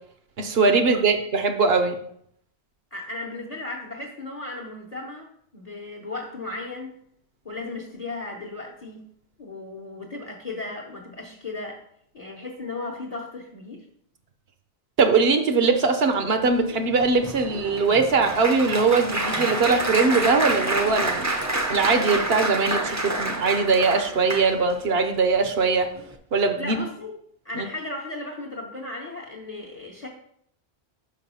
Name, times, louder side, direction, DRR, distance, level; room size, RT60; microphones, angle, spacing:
voice 1, 0.4-2.0 15.0-21.3 21.7-25.9 26.3-26.8 27.6-27.7, right 4 dB, 65° right, 7 dB, 1.0 m, -21 dB
voice 2, 2.9-5.3 5.5-7.0 7.4-9.0 9.4-11.8 12.1-13.9 26.6-27.2 27.4-30.1, left 2 dB, 40° left, 0 dB, 1.0 m, -35 dB
Applause, 16.5-24.8 25.4-25.7 26.0-26.2, right 2 dB, 20° right, 0.6 m, -28 dB
5.3 x 5.3 x 5.5 m, 0.69 s
omnidirectional pair, 1.1 m